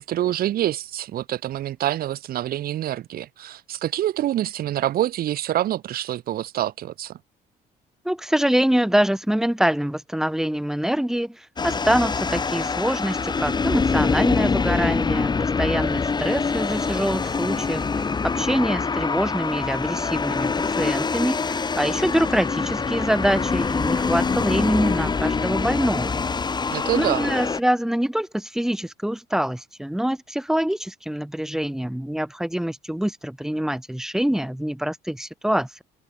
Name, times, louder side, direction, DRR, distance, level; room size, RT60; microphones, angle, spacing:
voice 1, 0.0-7.1 26.7-27.3, right 12 dB, 65° right, 1.4 m, -26 dB
voice 2, 8.0-17.8 18.2-21.5 21.8-26.2 26.9-35.8, equal, 5° right, 1.1 m, -25 dB
sound 1, 11.6-27.6, left 4 dB, 25° left, 2.7 m, -25 dB
open air
cardioid pair, 110°, 17 cm